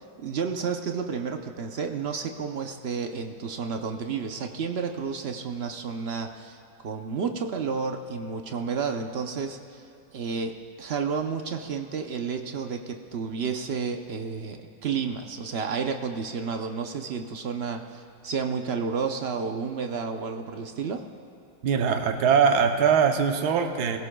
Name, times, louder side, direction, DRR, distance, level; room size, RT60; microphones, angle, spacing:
voice 1, 0.2-6.6 6.8-9.8 10.1-21.1, right 5 dB, 55° right, 5 dB, 0.7 m, -31 dB
voice 2, 21.6-24.0, right 6 dB, 70° right, 6 dB, 1.3 m, -22 dB
21.0 x 16.0 x 2.3 m, 2.8 s
omnidirectional pair, 1.8 m